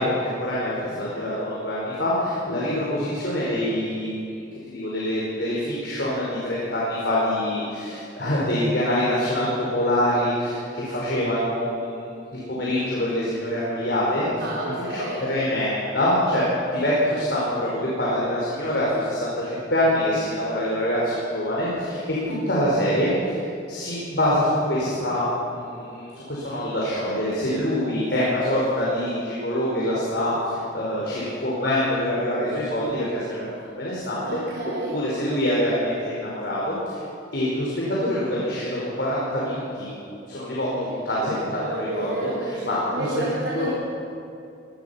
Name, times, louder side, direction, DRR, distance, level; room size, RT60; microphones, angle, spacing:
voice 1, 0.0-4.2 4.7-14.3 14.6-16.5 16.7-25.2 25.5-34.2 34.5-34.6 34.9-37.0 37.3-39.9 40.3-43.1 43.5-43.7, left 1 dB, 65° left, -6 dB, 5.1 m, -25 dB
voice 2, 14.4-15.3 22.2-22.5 34.3-35.0 40.7-40.9 41.6-43.7, right 2 dB, 80° right, -5 dB, 4.0 m, -31 dB
24.0 x 19.5 x 5.8 m, 2.6 s
head